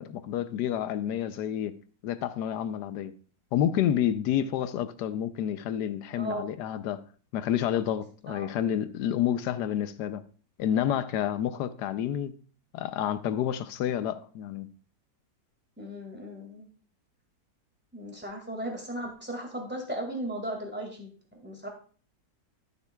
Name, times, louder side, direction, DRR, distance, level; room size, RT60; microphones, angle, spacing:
voice 1, 0.0-1.7 2.0-3.1 3.5-7.0 7.3-10.2 10.6-12.3 12.7-14.7, left 10 dB, 75° left, 1.2 m, -29 dB
voice 2, 6.2-6.5 8.3-8.5 15.8-16.7 17.9-21.1 21.4-21.7, right 1 dB, 5° right, 1.9 m, -36 dB
12.0 x 6.7 x 2.3 m
omnidirectional pair, 1.8 m